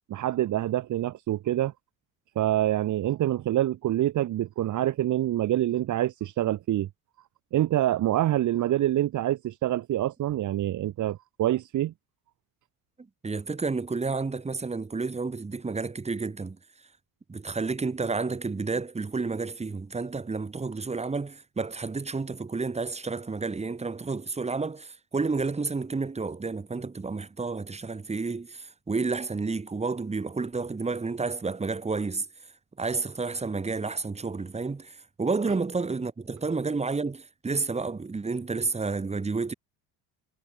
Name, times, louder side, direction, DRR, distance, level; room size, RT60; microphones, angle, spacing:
voice 1, 0.1-1.7 2.3-6.9 7.5-11.9, right 13 dB, 45° right, 1.4 m, -26 dB
voice 2, 13.0-16.6 17.3-32.3 32.8-39.5, right 4 dB, 15° right, 3.4 m, -30 dB
cardioid pair, 135°, 40 cm